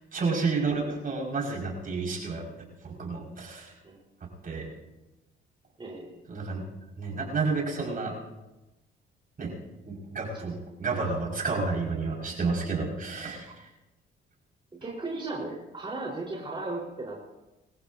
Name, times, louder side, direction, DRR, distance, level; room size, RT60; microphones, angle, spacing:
voice 1, 0.1-2.4 3.0-3.7 4.4-4.6 6.3-6.6 7.0-8.1 9.4-9.5 9.9-13.5, right 4 dB, 45° right, -1 dB, 5.7 m, -30 dB
voice 2, 5.8-6.2 10.3-10.5 14.8-17.2, right 2 dB, 25° right, -4 dB, 4.5 m, -36 dB
24.0 x 15.0 x 2.8 m, 1.0 s
cardioid pair, 90°, 20 cm